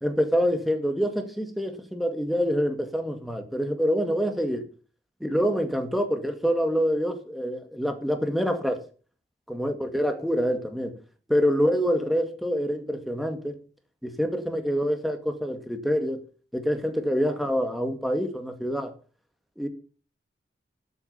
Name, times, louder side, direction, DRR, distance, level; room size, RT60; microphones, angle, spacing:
voice 1, 0.0-4.6 5.2-8.8 9.5-11.0 11.3-13.5 14.0-16.2 16.5-18.9 19.6-19.7, equal, ahead, 2.0 m, -26 dB
11.5 x 8.4 x 7.0 m
head